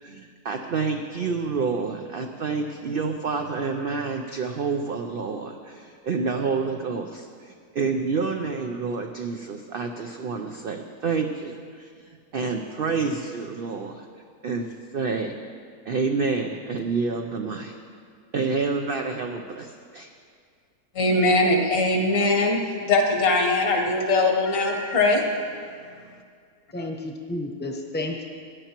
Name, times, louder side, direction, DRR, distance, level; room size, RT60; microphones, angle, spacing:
voice 1, 0.0-11.9 12.3-14.1 14.4-15.3 15.9-17.7 18.3-20.1, right 4 dB, 80° right, 4 dB, 0.5 m, -28 dB
voice 2, 20.9-25.2, left 2 dB, 70° left, 3 dB, 1.6 m, -21 dB
voice 3, 26.7-28.2, left 2 dB, 10° left, 1 dB, 0.7 m, -31 dB
17.0 x 10.0 x 3.0 m, 2.1 s
omnidirectional pair, 1.6 m